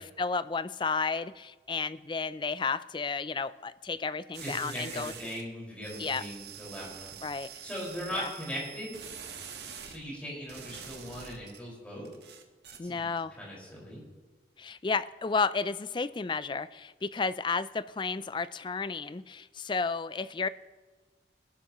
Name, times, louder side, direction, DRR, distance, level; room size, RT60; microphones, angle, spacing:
voice 1, 0.0-5.1 6.0-6.2 7.2-7.5 8.1-8.3 12.8-13.3 14.6-20.5, left 4 dB, 25° left, 15 dB, 0.4 m, -32 dB
sound 1, 4.3-5.4 5.8-10.0 10.5-11.6 12.0-12.8, right 8 dB, 70° right, 1.4 m, -45 dB
voice 2, 4.4-7.1 7.6-9.0 9.8-12.1 12.8-14.0, equal, 5° left, -5 dB, 5.2 m, -39 dB
21.5 x 12.0 x 3.1 m, 1.4 s
head